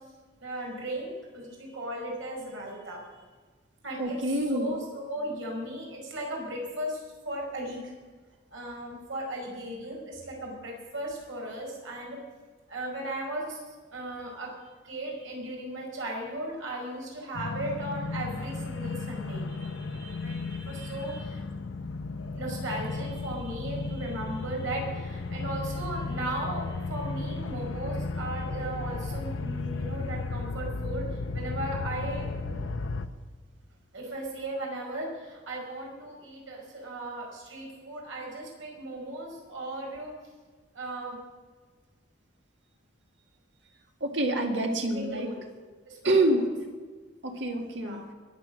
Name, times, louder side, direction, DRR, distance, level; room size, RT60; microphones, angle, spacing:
voice 1, 0.4-3.0 3.8-7.9 8.5-12.2 12.7-21.4 22.4-32.3 33.9-40.1 40.7-41.2 44.9-45.4 45.9-46.5 47.8-48.0, right 1 dB, 85° right, -1 dB, 5.2 m, -37 dB
voice 2, 4.0-4.8 44.0-45.3 46.0-46.4 47.2-48.0, right 1 dB, 70° right, 3 dB, 2.0 m, -27 dB
sound 1, 17.3-33.1, left 3 dB, 90° left, 0.8 m, -34 dB
22.0 x 7.6 x 6.4 m, 1.4 s
head